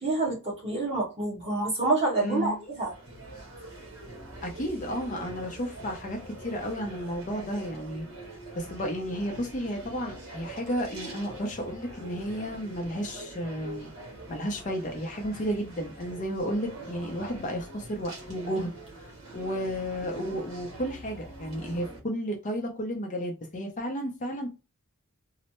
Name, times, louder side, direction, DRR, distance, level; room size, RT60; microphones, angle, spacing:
voice 1, 0.0-2.9, right 2 dB, 30° right, 1.4 m, -27 dB
voice 2, 2.2-2.6 4.4-8.1 8.6-13.9 14.3-18.7 19.3-24.5, equal, 35° left, 0.6 m, -32 dB
sound 1, 2.2-22.0, right 1 dB, 60° right, 1.1 m, -44 dB
3.1 x 2.0 x 2.9 m
head